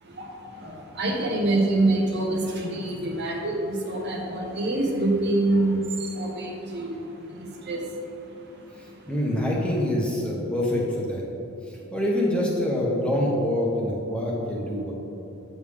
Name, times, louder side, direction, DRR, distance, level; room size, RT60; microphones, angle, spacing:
voice 1, 0.0-9.1, right 2 dB, 50° right, 0 dB, 1.0 m, -26 dB
voice 2, 8.8-11.2 11.7-14.9, left 1 dB, 5° left, -4 dB, 1.1 m, -26 dB
8.2 x 6.8 x 3.6 m, 2.9 s
head